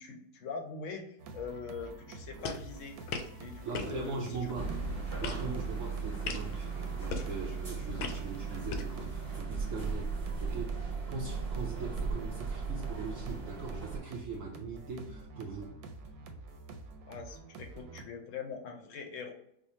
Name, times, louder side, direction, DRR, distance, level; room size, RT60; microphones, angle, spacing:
voice 1, 0.0-3.0 3.4-4.5 17.1-19.3, left 5 dB, 65° left, 3 dB, 0.8 m, -42 dB
sound 1, 1.2-18.1, right 3 dB, 90° right, 1.1 m, -48 dB
sound 2, 2.4-9.4, left 5 dB, 85° left, 1.1 m, -42 dB
voice 2, 3.7-4.8 5.2-10.2 10.4-15.7, right 4 dB, 70° right, -1 dB, 0.9 m, -41 dB
sound 3, 4.5-14.0, right 5 dB, 25° right, 1.2 m, -37 dB
4.9 x 2.0 x 2.8 m, 0.79 s
omnidirectional pair, 1.6 m